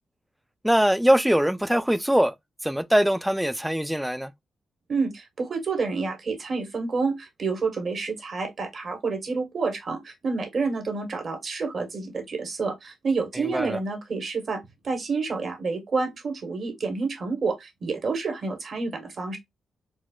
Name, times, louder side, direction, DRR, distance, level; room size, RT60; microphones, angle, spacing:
voice 1, 0.6-2.3 2.6-4.3 13.3-13.8, equal, 5° right, 0.4 m, -22 dB
voice 2, 4.9-19.4, right 4 dB, 60° right, 1.1 m, -29 dB
4.2 x 2.1 x 2.3 m
hypercardioid pair, 40°, 0 cm